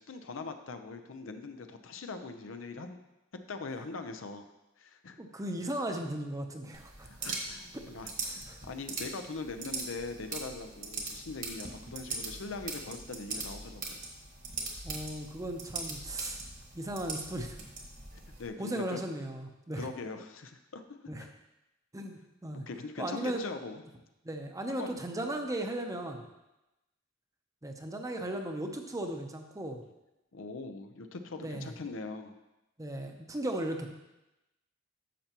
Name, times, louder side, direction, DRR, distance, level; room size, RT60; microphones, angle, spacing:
voice 1, 0.0-3.0 3.5-4.5 4.8-5.2 7.0-8.1 8.6-14.0 18.1-19.0 19.7-20.8 21.2-21.3 22.5-23.8 24.7-24.9 30.3-32.3, left 3 dB, 80° left, 7 dB, 0.7 m, -41 dB
voice 2, 5.2-7.1 8.2-8.6 14.8-16.4 16.7-17.6 18.6-19.9 21.1-21.3 21.9-22.6 23.0-23.4 24.2-26.2 27.6-29.8 31.4-31.7 32.8-33.9, right 1 dB, 15° right, 4 dB, 0.7 m, -36 dB
sound 1, 6.7-18.5, right 3 dB, 45° right, 1.4 m, -41 dB
10.0 x 6.8 x 3.0 m, 0.96 s
head